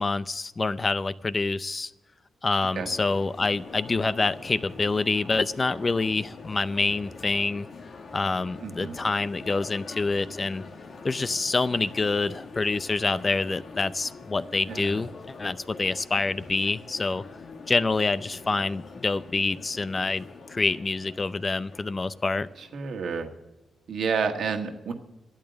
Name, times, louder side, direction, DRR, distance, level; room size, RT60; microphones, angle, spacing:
voice 1, 0.0-1.9 2.4-7.7 8.1-10.6 11.0-17.2 17.7-22.5, left 3 dB, 35° left, 15 dB, 0.5 m, -27 dB
sound 1, 2.9-22.8, left 4 dB, 65° left, 1.7 m, -44 dB
voice 2, 8.6-9.0 14.7-15.0 22.6-23.3 23.9-24.9, right 5 dB, 75° right, 5 dB, 1.6 m, -30 dB
12.0 x 8.8 x 8.0 m, 1.1 s
cardioid pair, 75°, 0 cm